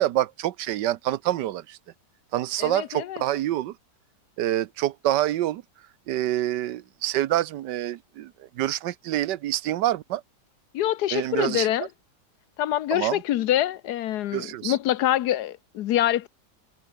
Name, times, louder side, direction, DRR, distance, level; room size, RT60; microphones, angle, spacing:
voice 1, 0.0-1.8 2.3-3.7 4.4-5.6 6.1-10.2 11.1-11.7 12.9-13.2 14.3-14.8, right 13 dB, 80° right, 1.3 m, -26 dB
voice 2, 2.6-3.2 10.7-11.9 12.6-16.3, left 12 dB, 70° left, 1.2 m, -25 dB
omnidirectional pair, 1.9 m